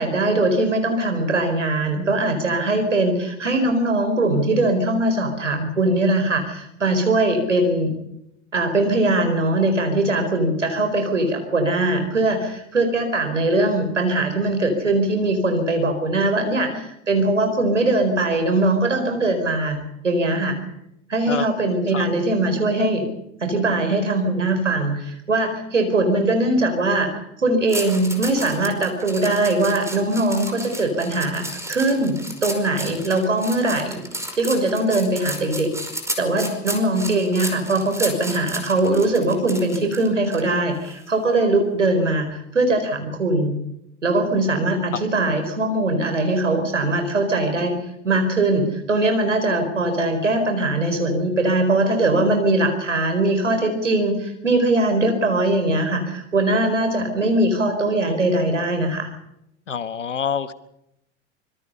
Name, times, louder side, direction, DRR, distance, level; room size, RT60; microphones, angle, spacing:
voice 1, 0.0-7.9 8.5-19.8 20.0-20.6 21.1-23.1 23.4-34.0 34.4-35.7 36.2-43.5 44.0-47.7 48.0-59.1, right 2 dB, 90° right, 6 dB, 4.8 m, -21 dB
sound 1, 27.7-40.4 40.8-41.1, right 1 dB, 10° right, 5.2 m, -33 dB
voice 2, 59.7-60.5, left 7 dB, 85° left, 14 dB, 1.3 m, -26 dB
25.5 x 22.0 x 5.6 m, 0.82 s
figure-of-eight pair, 75°, 36 cm